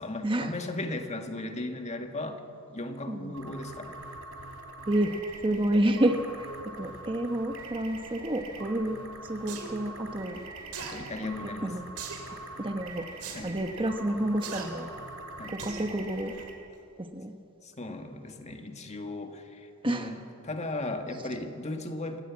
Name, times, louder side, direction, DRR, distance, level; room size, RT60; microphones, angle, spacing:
voice 1, 0.0-2.4 2.7-4.0 10.8-11.7 13.3-13.5 15.4-15.6 17.6-22.2, left 2 dB, 30° left, 5 dB, 1.9 m, -36 dB
sound 1, 3.3-16.5, right 2 dB, 65° right, 4.0 m, -44 dB
voice 2, 4.9-10.4 11.6-11.9 12.3-13.1 13.4-14.9 15.6-16.3 17.0-17.3 19.8-20.1, right 1 dB, 25° right, 5 dB, 1.1 m, -29 dB
sound 2, 9.5-9.7 10.7-11.0 12.0-12.3 13.2-13.4 14.4-14.6 15.6-15.9 16.3-16.4, right 6 dB, 90° right, 3.8 m, -38 dB
27.5 x 16.0 x 8.6 m, 2.7 s
head